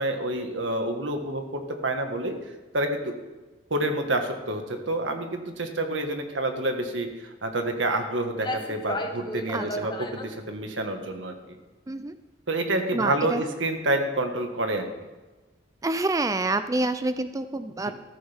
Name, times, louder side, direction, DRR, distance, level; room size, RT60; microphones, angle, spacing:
voice 1, 0.0-2.4 2.7-3.1 3.7-11.6 12.5-14.9 17.9-18.0, right 1 dB, 90° right, 5 dB, 1.7 m, -28 dB
sound 1, 8.0-8.1 8.4-10.4, left 1 dB, 25° left, 1.0 m, -34 dB
voice 2, 9.5-9.9 11.9-12.2 12.9-13.4 15.8-17.9, right 2 dB, 20° right, 11 dB, 0.4 m, -27 dB
14.0 x 14.0 x 3.6 m, 1.2 s
head